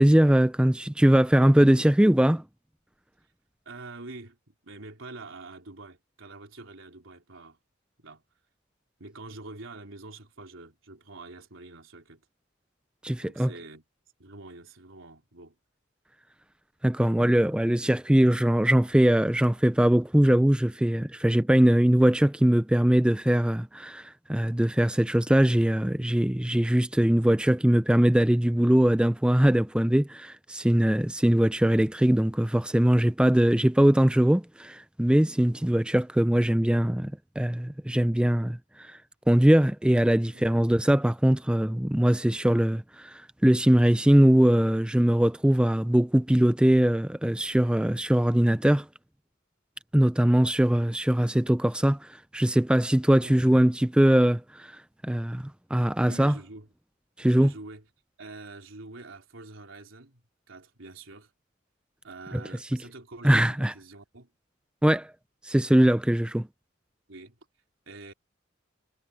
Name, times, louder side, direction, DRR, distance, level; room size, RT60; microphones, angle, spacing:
voice 1, 0.0-2.4 13.0-13.5 16.8-38.9 39.3-48.8 49.9-52.1 52.3-54.7 55.0-56.3 57.2-57.5 63.2-63.7 64.8-65.1 65.4-66.5, right 1 dB, 5° right, 0.4 m, -21 dB
voice 2, 3.7-7.6 8.0-8.2 9.0-12.3 13.2-13.8 14.2-15.6 40.3-40.5 53.2-53.4 56.0-56.7 57.4-57.9 58.2-61.3 62.0-64.3 67.1-67.4 67.9-68.1, right 3 dB, 75° right, 3.7 m, -45 dB
head